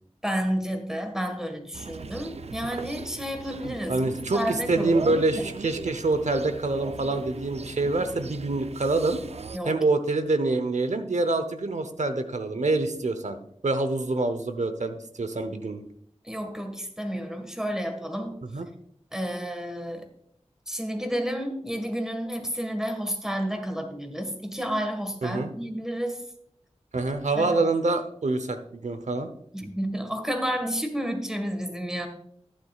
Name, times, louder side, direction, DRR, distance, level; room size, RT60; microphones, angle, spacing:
voice 1, 0.2-4.0 4.3-5.1 5.4-5.5 9.5-9.8 16.2-18.3 19.1-20.1 20.7-26.2 27.4-27.6 29.5-32.1, equal, 5° right, 5 dB, 1.7 m, -31 dB
sound 1, 1.7-9.6, right 5 dB, 65° right, 0.4 m, -38 dB
voice 2, 3.9-9.2 9.6-13.4 13.6-15.8 18.5-18.7 25.2-25.5 26.9-29.3, right 2 dB, 80° right, 9 dB, 0.9 m, -26 dB
11.5 x 9.5 x 2.4 m, 0.67 s
wide cardioid pair, 65°, 12 cm